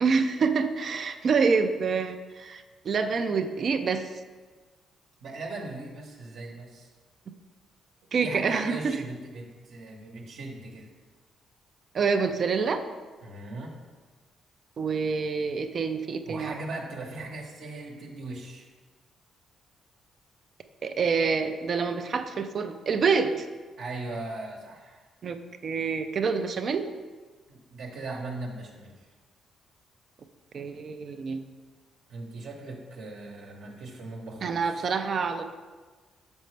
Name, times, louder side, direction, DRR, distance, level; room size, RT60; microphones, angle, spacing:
voice 1, 0.0-4.1 8.1-9.0 11.9-12.8 14.8-16.5 20.8-23.5 25.2-25.4 25.6-26.8 30.5-31.4 34.4-35.4, right 5 dB, 50° right, 7 dB, 0.4 m, -27 dB
voice 2, 5.2-6.9 8.2-10.9 13.2-13.8 16.3-18.7 23.8-25.0 27.5-29.1 32.1-34.8, right 2 dB, 75° right, -1 dB, 1.0 m, -39 dB
6.5 x 5.2 x 3.2 m, 1.4 s
cardioid pair, 90°, 0 cm